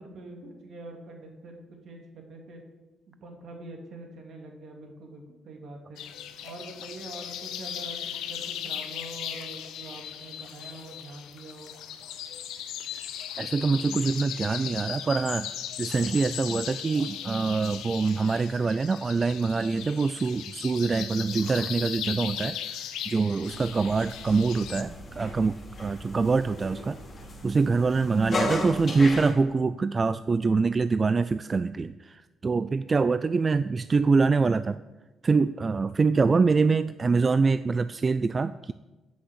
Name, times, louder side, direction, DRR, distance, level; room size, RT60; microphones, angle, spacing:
voice 1, 0.0-2.6 3.2-6.0 6.4-11.7 28.2-28.5, right 2 dB, 65° right, 2 dB, 2.4 m, -44 dB
sound 1, 6.0-24.8, left 9 dB, 90° left, 0.8 m, -37 dB
voice 2, 13.4-15.5 15.8-27.0 27.4-34.8 35.2-38.7, right 4 dB, 35° right, 13 dB, 0.3 m, -25 dB
sound 2, 23.4-29.3, left 2 dB, 40° left, 2.4 m, -36 dB
7.9 x 6.4 x 8.1 m, 1.1 s
cardioid pair, 90°, 0 cm